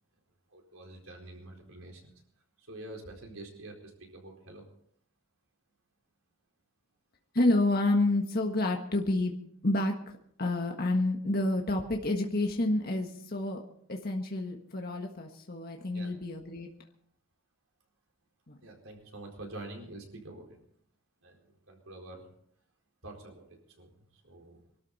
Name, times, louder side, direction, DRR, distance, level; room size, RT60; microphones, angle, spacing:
voice 1, 0.5-2.1 2.6-4.6 15.9-16.1 18.6-20.6 21.2-22.3 23.0-24.6, right 2 dB, 85° right, 1 dB, 4.4 m, -47 dB
voice 2, 7.3-9.3 9.6-13.6 13.9-16.7 18.5-18.6, left 2 dB, 45° left, 2 dB, 1.5 m, -29 dB
23.5 x 13.0 x 4.2 m, 0.67 s
head